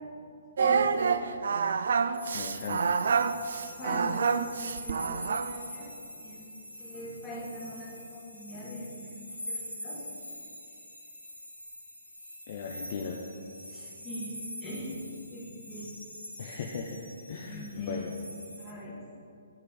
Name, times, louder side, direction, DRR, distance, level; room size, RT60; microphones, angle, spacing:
voice 1, 0.6-1.2 3.8-5.9 6.2-10.1 13.7-14.3 14.6-15.0 15.3-15.9 17.4-18.1 18.6-19.0, equal, 15° left, -6 dB, 1.9 m, -42 dB
Singing, 0.6-5.6, right 5 dB, 55° right, 0.3 m, -27 dB
sound 1, 2.1-18.7, equal, 85° left, 1.6 m, -44 dB
voice 2, 2.3-3.0 12.5-13.2 16.4-17.0 17.3-18.1, left 5 dB, 40° left, 1 dB, 0.6 m, -37 dB
10.0 x 6.4 x 3.9 m, 2.5 s
figure-of-eight pair, 125°, 0 cm